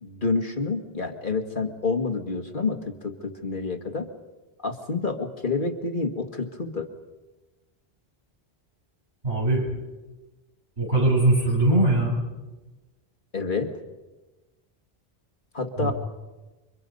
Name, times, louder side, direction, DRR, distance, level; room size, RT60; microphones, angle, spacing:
voice 1, 0.0-4.1 4.6-6.9 13.3-13.7 15.5-15.9, left 4 dB, 50° left, 5 dB, 1.9 m, -28 dB
voice 2, 9.2-9.6 10.8-12.2 15.8-15.9, right 2 dB, 75° right, -2 dB, 7.5 m, -21 dB
29.0 x 24.5 x 5.4 m, 1.2 s
omnidirectional pair, 1.1 m